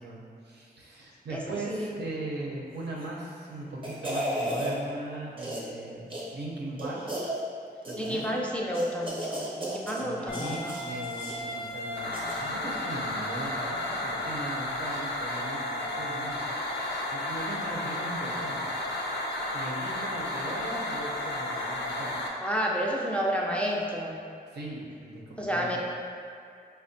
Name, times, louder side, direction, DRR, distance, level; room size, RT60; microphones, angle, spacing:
voice 1, 0.0-7.2 7.9-8.3 10.0-16.5 17.1-18.6 19.5-22.1 23.0-23.1 24.5-25.8, right 2 dB, 80° right, -3 dB, 0.6 m, -39 dB
sound 1, 2.9-3.2 3.6-4.8 5.4-5.7 6.1-6.2 6.8-7.4 7.8-8.3 8.7-10.0 10.3-11.4 12.1-12.5 12.8-12.9, right 1 dB, 30° right, 0.7 m, -34 dB
voice 2, 8.0-10.7 22.4-24.2 25.4-25.8, equal, 5° left, -3 dB, 0.3 m, -30 dB
sound 2, 10.3-22.3, left 1 dB, 85° left, 0.5 m, -33 dB
4.2 x 2.1 x 2.6 m, 2.3 s
wide cardioid pair, 95°, 17 cm